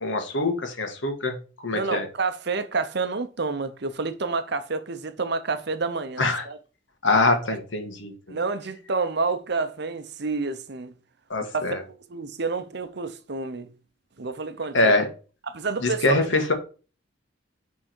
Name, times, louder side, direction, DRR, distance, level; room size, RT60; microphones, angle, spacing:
voice 1, 0.0-1.3 1.6-2.1 6.2-6.4 7.0-8.4 11.3-11.8 14.7-15.1 15.8-16.5, left 2 dB, 85° left, 1.7 m, -23 dB
voice 2, 1.7-6.6 7.1-7.2 7.5-7.6 8.3-10.9 11.4-13.7 14.2-14.9 15.4-16.2, right 4 dB, 60° right, 0.9 m, -29 dB
9.7 x 3.7 x 4.6 m
head